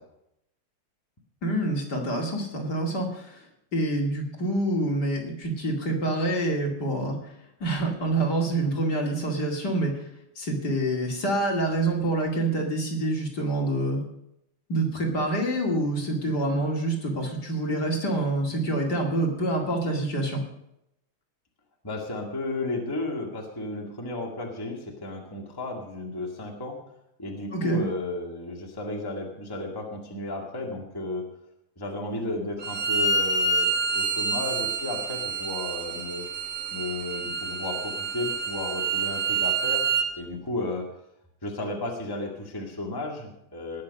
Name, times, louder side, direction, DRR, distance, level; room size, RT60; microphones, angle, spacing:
voice 1, 1.4-3.4 3.7-7.2 7.6-10.0 10.4-14.0 14.7-20.4 27.5-27.8, right 1 dB, 50° left, 0 dB, 3.0 m, -26 dB
voice 2, 21.8-26.8 27.2-31.3 31.8-36.3 36.7-39.8 40.1-40.8 41.4-43.8, left 2 dB, 10° left, 0 dB, 1.9 m, -33 dB
Bowed string instrument, 32.6-40.1, right 4 dB, 35° right, 1.5 m, -27 dB
19.5 x 6.6 x 6.5 m, 0.80 s
omnidirectional pair, 2.4 m